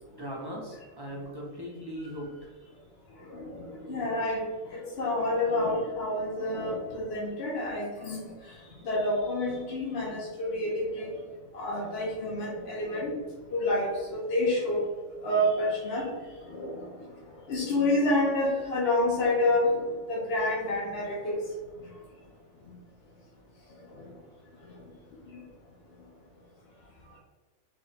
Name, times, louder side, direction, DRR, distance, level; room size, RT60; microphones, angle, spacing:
voice 1, 0.1-2.3, equal, 30° right, -4 dB, 0.5 m, -39 dB
voice 2, 3.3-4.4 4.7-8.3 8.8-11.2 11.5-13.1 13.5-14.8 15.2-16.1 16.5-16.9 17.5-21.4 25.3-25.4, left 1 dB, 60° left, -4 dB, 1.0 m, -28 dB
3.5 x 2.2 x 3.9 m, 1.4 s
omnidirectional pair, 1.3 m